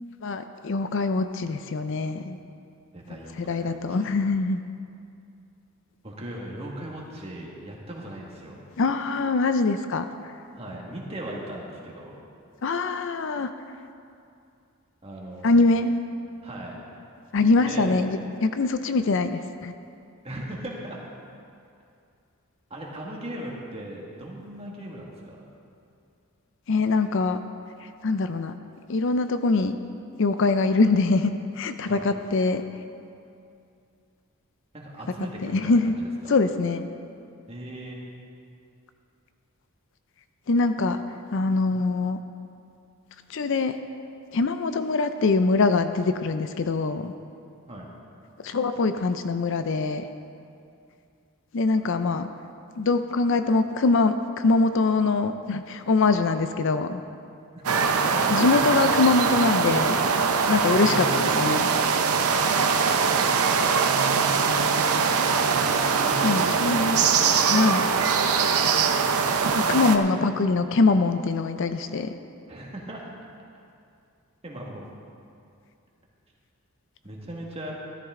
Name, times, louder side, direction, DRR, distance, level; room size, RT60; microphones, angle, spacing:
voice 1, 0.2-2.4 3.4-4.6 8.8-10.1 12.6-13.5 15.4-15.9 17.3-19.7 26.7-27.4 28.0-28.6 28.9-29.8 30.2-32.6 35.5-35.9 36.3-36.9 40.5-41.0 41.3-42.2 43.3-43.7 44.3-47.1 48.4-50.0 51.5-52.3 52.8-57.0 58.3-60.0 60.5-61.7 66.2-67.0 67.5-67.9 69.5-72.1, left 3 dB, 55° left, 9 dB, 0.5 m, -23 dB
voice 2, 2.9-4.1 6.0-8.6 10.6-12.1 15.0-15.7 16.4-16.8 17.6-18.0 20.2-21.0 22.7-25.4 31.9-32.1 34.7-36.3 37.5-38.0 47.7-47.9 57.7-59.0 60.7-61.2 66.0-67.3 72.5-73.1 74.4-74.9 77.0-77.7, right 1 dB, 25° right, -3 dB, 1.8 m, -38 dB
sound 1, 57.7-70.0, right 5 dB, 80° right, 0.7 m, -22 dB
13.5 x 13.0 x 3.7 m, 2.5 s
head